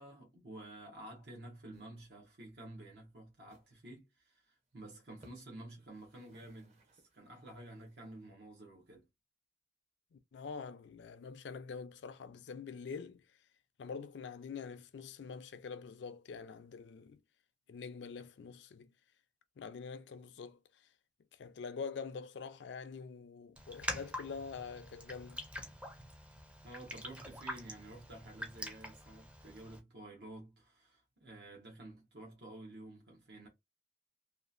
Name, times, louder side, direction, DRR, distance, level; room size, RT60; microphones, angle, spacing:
voice 1, 0.0-9.1 26.6-33.5, right 1 dB, 65° right, 0.9 m, -51 dB
sound 1, 1.2-1.3 1.6-1.9 2.2-2.3 2.8-2.9 3.4-3.7 4.2-4.3 4.5-4.7 5.1-5.5 5.8-8.3, right 2 dB, 40° right, 0.8 m, -66 dB
voice 2, 10.1-13.3 13.8-17.2 17.7-18.9 19.6-20.9 21.3-25.4, left 5 dB, 75° left, 0.4 m, -45 dB
Raindrop, 23.6-29.8, equal, 5° right, 0.4 m, -45 dB
2.8 x 2.4 x 2.5 m
head